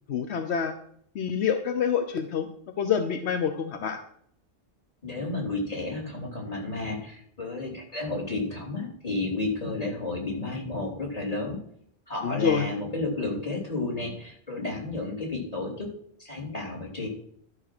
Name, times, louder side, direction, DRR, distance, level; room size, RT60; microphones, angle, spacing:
voice 1, 0.1-0.7 1.1-2.5 2.8-4.0 12.2-12.7, left 7 dB, 80° left, 7 dB, 1.1 m, -26 dB
voice 2, 5.0-11.6 12.1-15.9 16.2-17.1, left 2 dB, 35° left, -1 dB, 3.2 m, -32 dB
12.0 x 5.9 x 6.0 m, 0.65 s
omnidirectional pair, 1.1 m